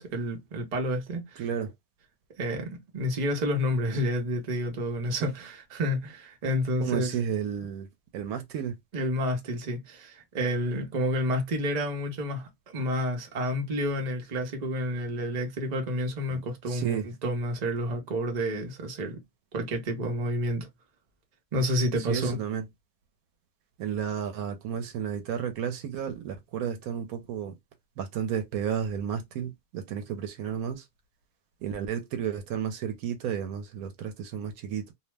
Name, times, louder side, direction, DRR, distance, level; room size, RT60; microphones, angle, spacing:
voice 1, 0.0-1.4 2.4-7.1 8.9-19.2 19.5-20.7 21.5-22.4, equal, 40° right, 0.7 m, -29 dB
voice 2, 1.4-1.7 6.8-7.9 8.1-8.8 16.3-16.4 16.7-17.1 22.0-22.6 23.8-27.6 28.0-30.9 31.6-34.9, right 8 dB, 75° right, 1.0 m, -32 dB
2.7 x 2.0 x 3.2 m
omnidirectional pair, 1.6 m